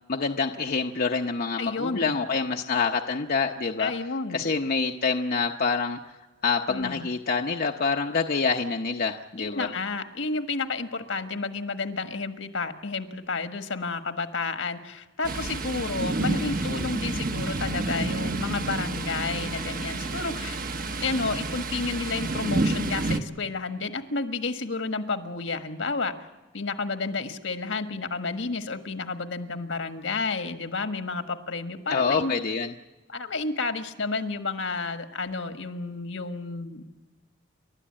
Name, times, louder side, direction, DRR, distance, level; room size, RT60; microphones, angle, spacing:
voice 1, 0.1-3.9 4.3-6.0 6.4-9.7 31.9-32.7, left 4 dB, 50° left, 2 dB, 0.8 m, -26 dB
voice 2, 1.6-2.1 3.8-4.4 6.7-7.1 9.4-20.6 21.0-26.1 26.5-32.3 33.1-36.8, left 3 dB, 75° left, 8 dB, 1.5 m, -31 dB
Thunder, 15.2-23.2, right 2 dB, 50° right, 1.0 m, -29 dB
30.0 x 12.5 x 8.7 m, 1.2 s
head